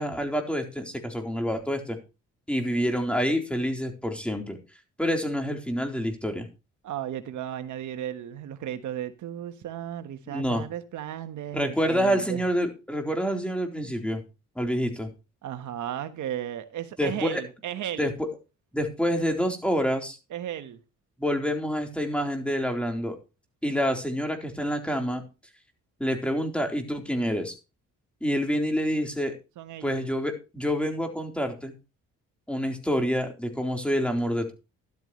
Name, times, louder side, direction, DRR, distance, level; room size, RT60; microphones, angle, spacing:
voice 1, 0.0-2.0 2.5-4.6 5.0-6.5 10.3-10.6 11.5-14.2 14.6-15.1 17.0-17.4 18.0-18.3 18.7-20.2 21.2-23.2 23.6-25.2 26.0-27.5 28.2-29.3 29.8-31.7 32.5-34.5, equal, 5° left, 3.9 m, -27 dB
voice 2, 6.8-12.4 15.4-18.1 20.3-20.8 29.6-30.0, right 10 dB, 75° right, 1.3 m, -35 dB
13.5 x 12.5 x 3.2 m
cardioid pair, 90°, 30 cm